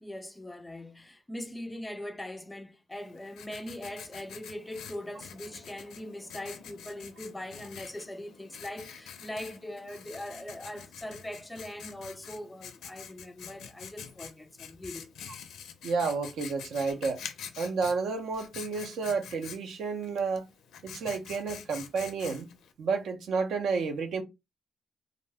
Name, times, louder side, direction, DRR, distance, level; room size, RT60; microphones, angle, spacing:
voice 1, 0.0-15.1, left 1 dB, 10° left, 0.3 m, -41 dB
Writing, 2.9-22.7, left 7 dB, 90° left, 0.4 m, -47 dB
voice 2, 15.8-17.2 17.6-20.5 20.8-22.5 22.8-24.2, right 4 dB, 75° right, 0.6 m, -31 dB
2.4 x 2.1 x 3.4 m
cardioid pair, 110°, 0 cm